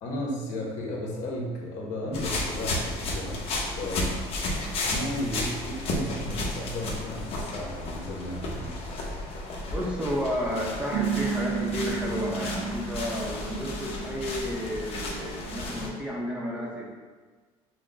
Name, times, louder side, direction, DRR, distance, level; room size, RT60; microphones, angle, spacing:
voice 1, 0.0-4.2 4.8-8.8, left 1 dB, 70° left, -2 dB, 1.1 m, -34 dB
sound 1, 2.1-15.9, left 2 dB, 50° left, 0.9 m, -33 dB
voice 2, 9.7-16.9, equal, 10° right, -3 dB, 0.8 m, -32 dB
sound 2, 10.9-15.9, right 7 dB, 90° right, 0.5 m, -33 dB
6.2 x 2.2 x 3.9 m, 1.4 s
cardioid pair, 130°, 13 cm